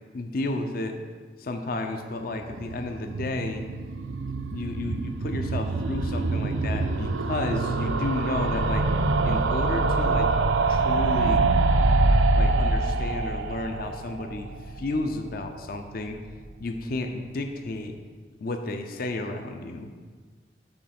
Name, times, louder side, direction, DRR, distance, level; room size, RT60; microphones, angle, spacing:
voice 1, 0.1-1.0 1.4-3.6 4.5-8.9 9.2-10.3 10.7-11.4 12.3-16.2 16.6-17.9 18.4-20.1, left 2 dB, 55° left, 5 dB, 0.5 m, -32 dB
sound 1, 2.3-15.4 15.7-15.8 16.0-16.1 16.3-16.4, right 3 dB, 90° right, 0.5 m, -25 dB
7.7 x 4.2 x 5.8 m, 1.5 s
head